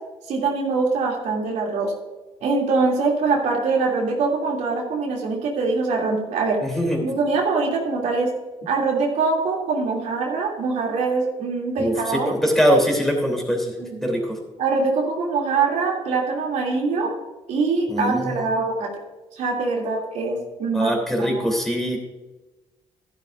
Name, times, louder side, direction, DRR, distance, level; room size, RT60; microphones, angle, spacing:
voice 1, 0.3-1.9 2.4-6.6 7.0-8.3 8.7-12.3 13.8-14.0 14.6-17.1 17.5-18.9 19.4-20.9 21.2-21.4, right 4 dB, 80° right, -1 dB, 2.9 m, -23 dB
voice 2, 6.6-7.0 11.8-11.9 12.3-13.7 14.0-14.4 17.9-18.2 20.7-22.0, equal, 5° left, 0 dB, 3.3 m, -22 dB
13.0 x 11.5 x 2.6 m, 1.1 s
cardioid pair, 100°, 12 cm